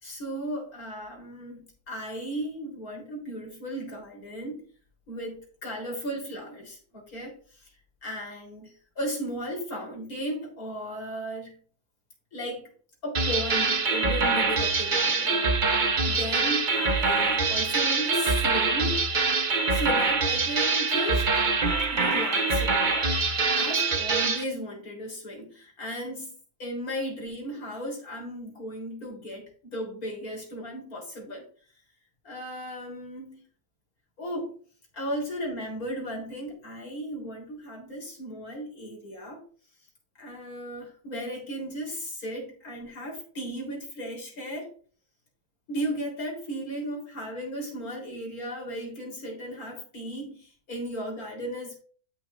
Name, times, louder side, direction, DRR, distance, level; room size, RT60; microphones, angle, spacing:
voice 1, 0.0-4.6 5.1-7.6 8.0-11.6 12.3-12.7 13.0-15.5 16.0-19.0 19.7-21.5 21.9-26.3 26.6-31.4 32.2-33.4 34.2-34.6 34.9-39.4 40.2-44.7 45.7-51.8, equal, 70° left, 0 dB, 4.3 m, -35 dB
sound 1, 13.1-24.4, right 4 dB, 35° right, 1.0 m, -24 dB
13.0 x 6.4 x 2.6 m, 0.43 s
omnidirectional pair, 1.6 m